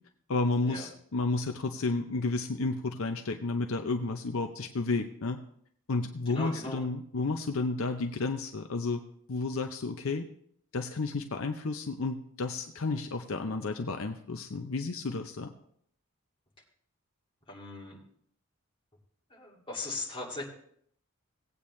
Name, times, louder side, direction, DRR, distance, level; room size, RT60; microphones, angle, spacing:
voice 1, 0.3-5.4 5.9-9.0 9.3-10.3 10.7-15.5, left 3 dB, 65° left, 5 dB, 0.6 m, -32 dB
voice 2, 6.3-6.8 17.5-18.0 19.3-20.4, left 2 dB, 25° left, -3 dB, 2.4 m, -39 dB
18.0 x 8.5 x 3.2 m, 0.65 s
head